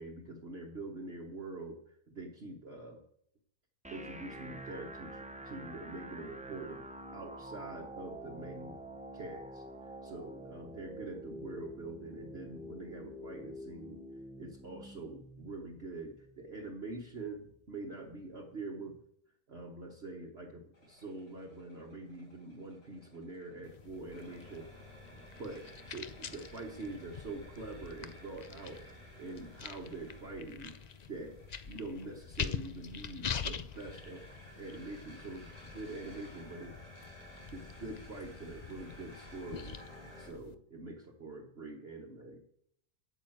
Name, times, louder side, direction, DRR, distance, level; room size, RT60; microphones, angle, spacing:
voice 1, 0.0-3.0 3.9-8.8 9.1-14.0 14.4-19.0 19.5-24.7 25.1-25.6 25.9-28.8 29.2-30.7 31.1-31.4 31.6-34.2 34.6-36.7 37.5-39.8 40.2-42.4, right 2 dB, 45° right, 0 dB, 1.4 m, -45 dB
sound 1, 3.8-17.8, right 1 dB, 10° right, 0.5 m, -48 dB
sound 2, 20.7-40.3, equal, 85° left, 6.5 m, -55 dB
sound 3, 23.6-40.5, left 6 dB, 65° left, 0.4 m, -45 dB
8.9 x 8.9 x 7.8 m, 0.69 s
omnidirectional pair, 1.6 m